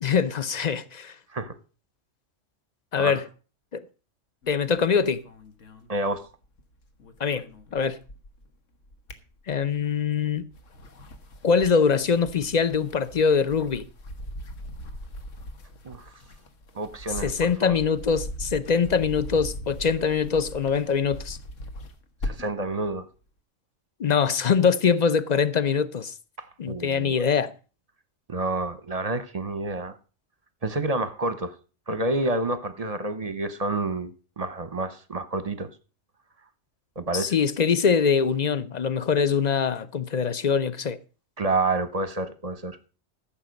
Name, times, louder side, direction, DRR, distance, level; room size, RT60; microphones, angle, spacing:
voice 1, 0.0-1.2 2.9-3.2 3.7-3.8 4.5-5.2 7.2-7.4 7.7-8.0 9.5-10.5 11.4-13.8 17.2-21.4 24.0-26.1 26.6-27.5 37.1-41.0, left 6 dB, 40° left, 0.7 m, -23 dB
sound 1, 4.4-6.6 6.9-8.5 8.8-9.9 10.4-22.6, left 1 dB, 75° left, 1.7 m, -40 dB
voice 2, 5.9-6.3 15.8-16.1 16.7-17.7 22.2-23.0 26.4-27.1 28.3-30.0 30.6-31.5 31.9-35.7 37.0-37.3 41.4-42.9, right 2 dB, 35° right, 0.8 m, -29 dB
14.0 x 7.3 x 5.2 m
omnidirectional pair, 1.3 m